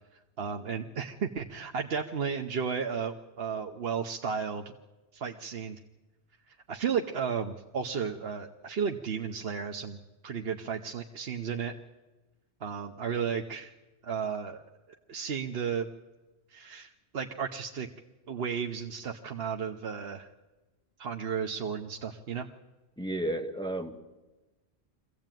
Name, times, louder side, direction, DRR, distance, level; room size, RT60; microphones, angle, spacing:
voice 1, 0.4-4.7 5.1-5.8 6.5-10.0 10.2-11.7 12.6-13.7 14.0-14.6 15.1-15.9 16.5-17.9 18.3-20.3 21.0-22.5, right 6 dB, 65° right, 3 dB, 1.1 m, -33 dB
voice 2, 23.0-24.0, right 1 dB, 5° left, 4 dB, 1.2 m, -32 dB
23.5 x 16.0 x 9.1 m, 1.1 s
omnidirectional pair, 1.1 m